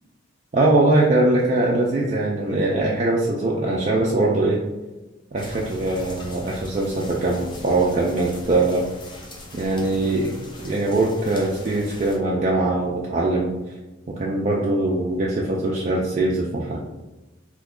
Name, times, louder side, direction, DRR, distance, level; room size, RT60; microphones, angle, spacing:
voice 1, 0.5-4.6 5.3-8.9 9.5-10.3 10.6-13.5 14.1-16.8, right 2 dB, 35° right, -3 dB, 0.3 m, -21 dB
sound 1, 5.4-12.2, left 1 dB, 25° left, 0.5 m, -40 dB
2.9 x 2.3 x 3.6 m, 1.1 s
head